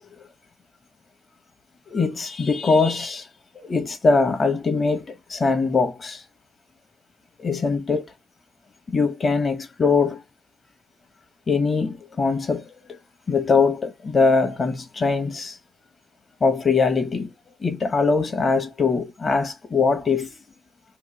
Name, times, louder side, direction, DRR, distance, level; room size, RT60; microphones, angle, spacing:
voice 1, 1.9-3.3 3.5-6.2 7.4-8.0 8.9-10.2 11.5-13.0 13.3-15.6 16.4-17.3 17.6-20.3, left 4 dB, 40° left, 0.8 m, -22 dB
3.0 x 2.1 x 3.1 m
cardioid pair, 85°, 0 cm